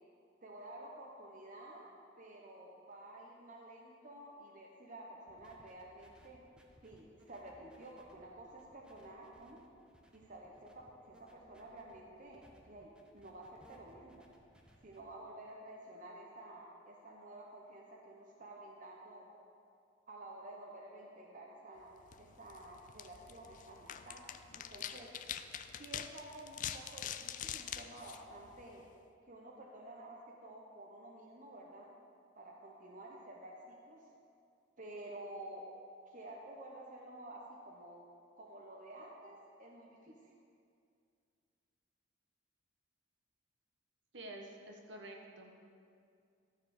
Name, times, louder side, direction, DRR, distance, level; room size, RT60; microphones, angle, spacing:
voice 1, 0.4-1.9 2.2-6.4 6.8-9.6 10.1-14.3 14.8-19.3 20.1-21.9 22.2-24.2 24.5-25.1 25.8-28.8 29.3-31.9 32.3-34.1 34.8-35.7 36.1-38.0 38.4-40.3, right 1 dB, 40° right, -1 dB, 0.9 m, -51 dB
sound 1, 5.3-15.0, equal, 5° right, 0.7 m, -66 dB
sound 2, 22.0-29.0, left 9 dB, 40° left, 0.4 m, -45 dB
voice 2, 44.1-45.6, right 1 dB, 65° right, 1 dB, 1.1 m, -49 dB
13.0 x 4.9 x 6.7 m, 2.4 s
head